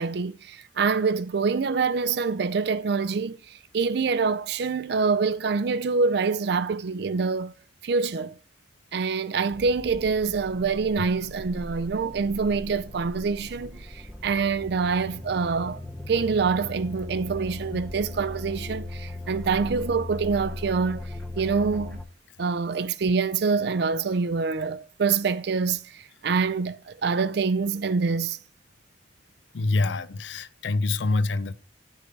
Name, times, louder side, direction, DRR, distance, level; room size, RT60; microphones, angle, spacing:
voice 1, 0.0-7.5 7.8-8.3 8.9-15.8 16.1-21.0 21.4-22.0 22.4-28.4, right 5 dB, 60° right, 0.4 m, -26 dB
sound 1, 9.5-22.1, left 1 dB, 5° left, 0.6 m, -38 dB
voice 2, 29.5-31.5, left 3 dB, 75° left, 0.5 m, -25 dB
9.9 x 3.8 x 5.3 m
head